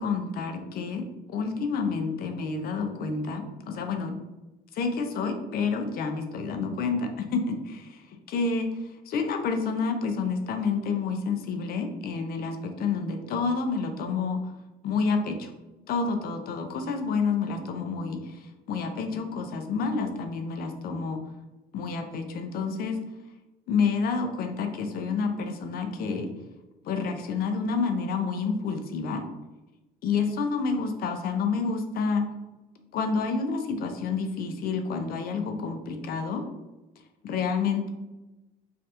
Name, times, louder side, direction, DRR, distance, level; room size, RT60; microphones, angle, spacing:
voice 1, 0.0-4.2 4.7-8.0 8.3-14.5 14.8-15.5 15.9-21.2 21.7-23.0 23.7-26.3 26.8-29.2 30.0-32.3 32.9-36.4 37.2-37.9, left 4 dB, 65° left, 6 dB, 0.5 m, -29 dB
3.2 x 2.4 x 2.8 m, 1.0 s
cardioid pair, 110°, 17 cm